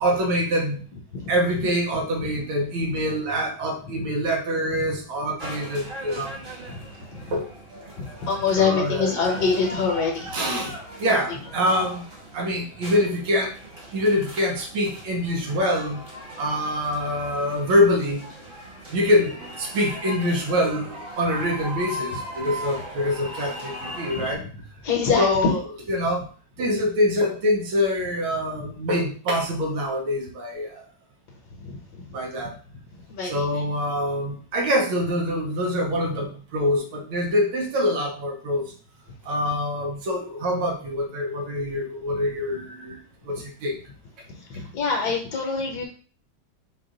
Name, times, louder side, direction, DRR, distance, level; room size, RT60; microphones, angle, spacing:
voice 1, 0.0-0.9 1.3-6.3 7.3-7.5 8.6-9.2 10.3-10.7 11.0-12.0 12.3-13.5 13.9-16.0 16.4-18.3 18.9-24.4 25.2-26.2 26.6-30.8 32.1-32.5 33.3-38.6 39.3-43.0 43.3-43.7, left 1 dB, 90° right, 1 dB, 1.8 m, -25 dB
sound 1, 5.4-24.3, equal, 35° right, 1.0 m, -39 dB
voice 2, 8.0-10.3 24.2-24.4 24.8-25.5 31.6-32.0 33.1-33.6 44.5-45.8, left 5 dB, 60° left, -1 dB, 1.3 m, -25 dB
4.7 x 2.4 x 3.8 m, 0.41 s
omnidirectional pair, 2.2 m